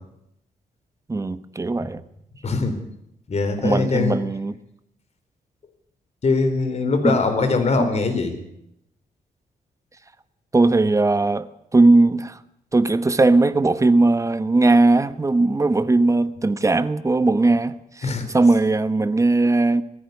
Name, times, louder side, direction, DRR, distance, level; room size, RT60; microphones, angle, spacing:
voice 1, 1.1-2.0 3.6-4.5 7.0-7.2 7.8-7.9 10.5-11.5 11.7-12.4 12.7-19.8, right 2 dB, 20° right, 1.1 m, -18 dB
voice 2, 2.4-2.8 3.3-4.2 6.2-8.4 18.0-18.3, left 3 dB, 45° left, 4.2 m, -22 dB
18.5 x 15.5 x 9.6 m
cardioid pair, 100°, 15 cm